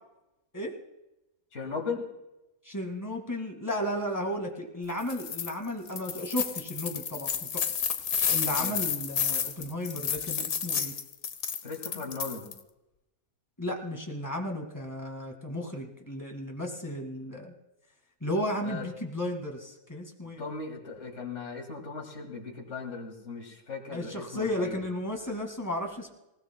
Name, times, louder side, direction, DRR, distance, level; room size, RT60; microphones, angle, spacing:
voice 1, 1.5-2.1 8.6-8.8 11.6-12.5 18.6-18.8 20.4-24.8, left 4 dB, 55° left, 1 dB, 2.4 m, -37 dB
voice 2, 2.6-7.6 8.3-10.9 13.6-17.5 18.2-20.4 23.9-26.1, left 1 dB, 15° left, 2 dB, 1.9 m, -34 dB
sound 1, 5.0-5.5 5.9-12.6, left 7 dB, 75° left, 1.3 m, -31 dB
26.0 x 16.5 x 2.2 m, 0.95 s
omnidirectional pair, 1.5 m